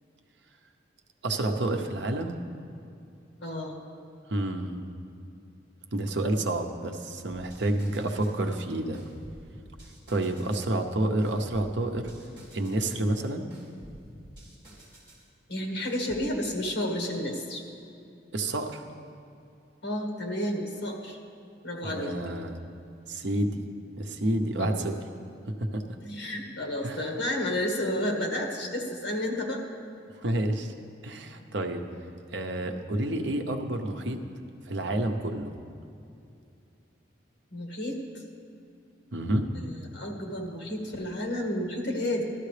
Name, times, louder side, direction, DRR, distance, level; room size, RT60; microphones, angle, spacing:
voice 1, 1.2-2.4 4.3-4.8 5.9-9.0 10.1-12.1 12.5-13.5 18.3-18.8 21.8-22.5 23.1-23.7 24.0-24.9 25.6-25.8 26.8-27.0 30.2-30.7 31.0-31.8 32.3-34.2 34.7-35.5 39.1-39.5, right 1 dB, 65° right, 5 dB, 0.8 m, -29 dB
voice 2, 3.4-3.8 15.5-17.6 19.8-21.2 21.6-22.1 24.6-24.9 26.0-29.6 37.5-38.2 39.5-42.2, left 1 dB, 65° left, 1 dB, 1.7 m, -31 dB
sound 1, 7.2-8.4 8.9-10.7 11.2-13.0 13.5-15.3 15.8-16.3, equal, 25° right, 3.0 m, -50 dB
15.0 x 12.5 x 3.3 m, 2.6 s
head